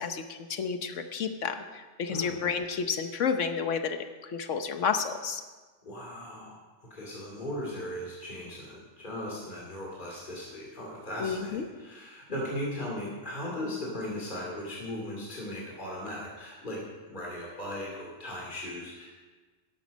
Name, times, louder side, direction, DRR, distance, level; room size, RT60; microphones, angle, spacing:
voice 1, 0.0-5.4 11.2-11.6, left 6 dB, 80° left, 8 dB, 1.3 m, -31 dB
voice 2, 2.1-2.4 5.8-16.8 17.1-19.1, left 1 dB, 40° left, -4 dB, 2.9 m, -38 dB
12.5 x 11.5 x 5.2 m, 1.3 s
omnidirectional pair, 1.2 m